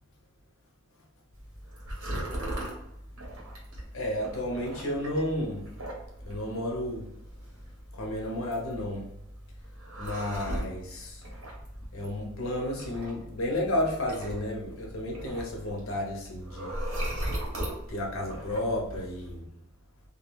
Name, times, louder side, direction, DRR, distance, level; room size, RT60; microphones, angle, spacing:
sound 1, 1.3-19.4, right 1 dB, 85° right, 0.9 m, -39 dB
voice 1, 3.9-5.6 6.3-7.0 8.0-9.0 10.0-11.2 11.9-16.8 17.9-19.4, left 1 dB, 70° left, -1 dB, 0.6 m, -32 dB
2.3 x 2.2 x 3.0 m, 0.81 s
head